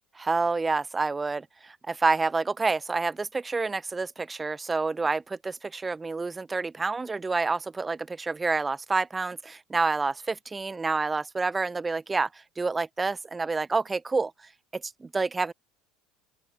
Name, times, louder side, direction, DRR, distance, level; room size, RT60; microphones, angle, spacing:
voice 1, 0.1-12.3 12.6-14.3 14.7-15.5, right 3 dB, 15° right, 2.6 m, -28 dB
open air
supercardioid pair, 105°, 0 cm